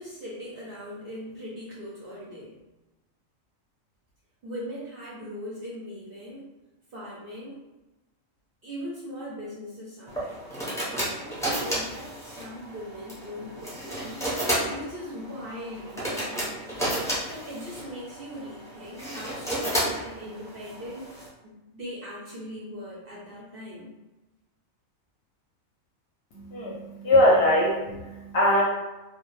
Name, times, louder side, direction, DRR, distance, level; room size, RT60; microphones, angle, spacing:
voice 1, 0.0-2.5 4.4-6.5 6.9-7.6 8.6-10.6 11.1-14.3 14.6-16.8 17.3-21.2 21.4-23.9, equal, 60° right, -6 dB, 0.6 m, -40 dB
sound 1, 10.1-21.3, right 1 dB, 5° left, 0.4 m, -32 dB
voice 2, 26.3-28.6, left 1 dB, 60° left, -4 dB, 0.7 m, -22 dB
2.1 x 2.1 x 3.0 m, 1.1 s
omnidirectional pair, 1.4 m